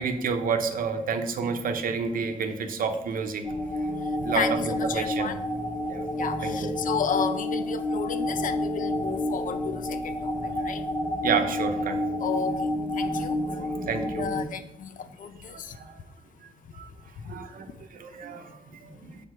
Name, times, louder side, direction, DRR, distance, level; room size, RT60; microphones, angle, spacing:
voice 1, 0.0-3.4 4.2-5.3 5.9-6.0 6.4-6.7 11.2-12.0 13.1-14.4 15.5-15.9 16.7-16.9 17.3-17.7 17.9-18.6 18.8-19.2, right 5 dB, 70° right, 7 dB, 0.9 m, -30 dB
sound 1, 3.4-14.4, left 1 dB, 15° left, 0.8 m, -29 dB
voice 2, 4.3-5.4 6.2-10.3 10.6-10.8 12.2-13.4 14.2-15.8 17.2-17.3, left 7 dB, 65° left, 10 dB, 0.7 m, -32 dB
7.4 x 4.8 x 4.6 m, 0.81 s
cardioid pair, 110°, 15 cm